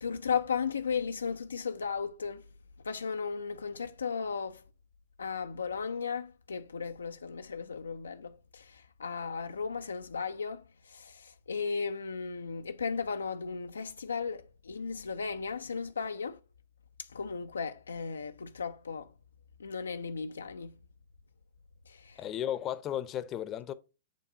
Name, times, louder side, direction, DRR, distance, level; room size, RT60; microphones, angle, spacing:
voice 1, 0.0-2.4 2.8-4.6 5.2-16.4 17.0-19.1 19.6-20.7 21.9-22.2, left 5 dB, 90° left, 0.4 m, -35 dB
voice 2, 22.2-23.7, left 11 dB, 30° left, 0.6 m, -34 dB
7.3 x 2.6 x 4.9 m
hypercardioid pair, 120°, 0 cm